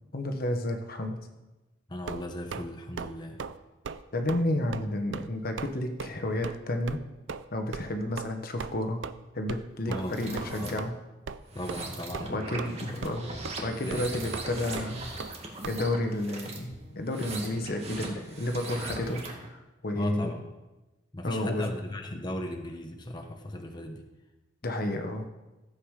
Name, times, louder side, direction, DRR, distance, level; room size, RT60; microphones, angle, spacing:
voice 1, 0.1-1.3 4.1-7.0 7.5-9.0 9.3-10.9 12.2-13.3 13.6-15.1 15.6-20.3 21.2-21.8 22.1-22.2 24.6-25.3, left 1 dB, 55° left, 5 dB, 1.2 m, -31 dB
voice 2, 1.9-3.4 9.9-10.2 10.6-10.8 11.5-12.6 12.9-14.3 20.0-20.4 21.1-24.1, left 1 dB, 25° left, 3 dB, 1.1 m, -37 dB
sound 1, 2.1-2.7 3.0-3.1 3.4-3.6 3.8-4.0 4.3-4.4 4.7-4.9 5.1-5.3 5.6-5.7 6.0-6.1 6.4-6.6 6.9-7.0 7.3-7.4 7.7-7.8 8.2-8.3 8.6-8.7 9.0-9.1 9.5-9.6 9.9-10.1 10.4-10.5 10.8-10.9 11.3-11.4 11.7-11.8 12.1-12.7 13.0-13.2 13.4-13.5 13.9-14.0 14.3-14.4 14.8-14.9 15.2-15.3 15.6-15.8, right 5 dB, 80° right, 0.5 m, -37 dB
sound 2, 10.0-10.7 11.4-19.5, right 2 dB, 35° right, 2.0 m, -40 dB
14.5 x 8.2 x 4.9 m, 1.1 s
head